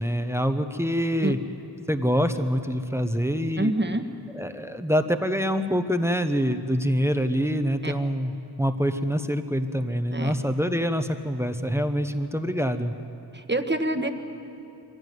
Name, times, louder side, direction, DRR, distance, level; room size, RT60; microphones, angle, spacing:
voice 1, 0.0-1.4 1.9-3.7 4.3-12.9, equal, 5° right, 8 dB, 1.1 m, -25 dB
voice 2, 3.6-4.0 7.8-7.9 10.1-10.3 13.3-14.1, right 1 dB, 25° right, 6 dB, 1.5 m, -26 dB
23.5 x 16.5 x 9.5 m, 2.8 s
wide cardioid pair, 50°, 42 cm